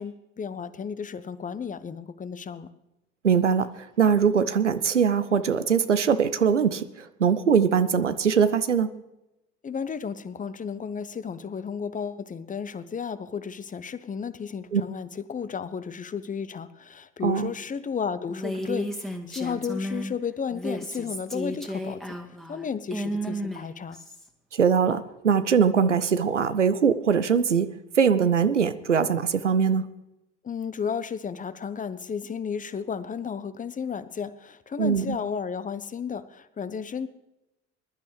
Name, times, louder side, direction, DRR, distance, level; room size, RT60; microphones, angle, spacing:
voice 1, 0.0-2.7 9.6-22.2 22.5-24.0 30.4-37.1, left 6 dB, 20° left, 14 dB, 0.9 m, -33 dB
voice 2, 3.2-8.9 14.7-14.8 17.2-17.5 24.5-27.7 28.0-29.9 34.8-35.2, right 6 dB, 90° right, 13 dB, 0.6 m, -22 dB
Female speech woman speaking, 18.3-20.1 20.5-24.3, equal, ahead, 1.9 m, -33 dB
21.0 x 11.5 x 3.3 m, 0.95 s
figure-of-eight pair, 60°, 35 cm